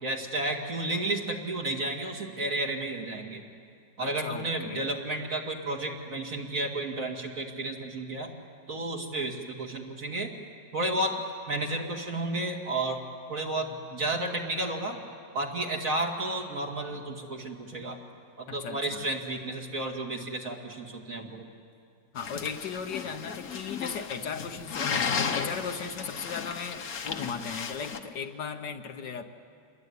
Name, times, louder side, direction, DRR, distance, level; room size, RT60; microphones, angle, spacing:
voice 1, 0.0-3.4 4.0-8.3 8.7-10.3 10.7-11.2 11.5-13.0 13.3-15.0 15.3-18.0 18.4-21.4, right 2 dB, 45° right, 1 dB, 2.5 m, -32 dB
voice 2, 4.0-4.9 18.5-19.0 22.1-29.2, left 6 dB, 70° left, 5 dB, 1.7 m, -37 dB
sound 1, 22.2-28.0, left 6 dB, 55° left, 1.6 m, -34 dB
27.5 x 21.5 x 9.6 m, 2.3 s
omnidirectional pair, 2.0 m